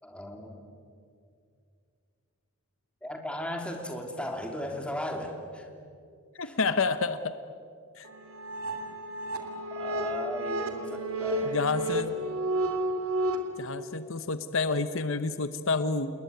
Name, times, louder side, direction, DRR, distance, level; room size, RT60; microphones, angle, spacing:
voice 1, 0.0-0.6 3.0-5.7 6.4-6.6 9.7-11.8 12.6-12.7, left 1 dB, 5° left, 3 dB, 3.1 m, -36 dB
voice 2, 6.3-7.3 8.0-8.1 11.5-12.1 13.6-16.1, left 4 dB, 65° left, 12 dB, 1.0 m, -29 dB
sound 1, 8.0-13.4, right 1 dB, 85° right, 2.9 m, -31 dB
29.0 x 21.0 x 9.3 m, 2.3 s
head